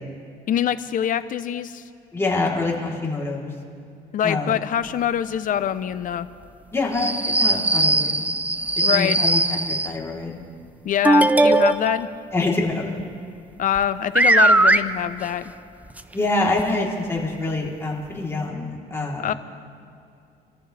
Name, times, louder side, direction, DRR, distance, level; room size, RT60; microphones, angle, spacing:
voice 1, 0.5-1.8 4.1-6.3 8.8-9.2 10.8-12.1 13.6-15.5 19.2-19.3, left 9 dB, 50° left, 13 dB, 0.8 m, -24 dB
voice 2, 2.1-3.5 4.2-4.5 6.7-8.4 8.9-10.4 12.3-13.0 16.1-19.3, left 2 dB, 15° left, -4 dB, 3.6 m, -26 dB
sound 1, 7.0-10.0 11.0-12.0 13.8-13.9 14.1-14.8 16.0-16.1 16.6-16.7 17.5-17.6, right 2 dB, 10° right, 0.5 m, -19 dB
27.5 x 14.0 x 3.4 m, 2.5 s
cardioid pair, 110°, 17 cm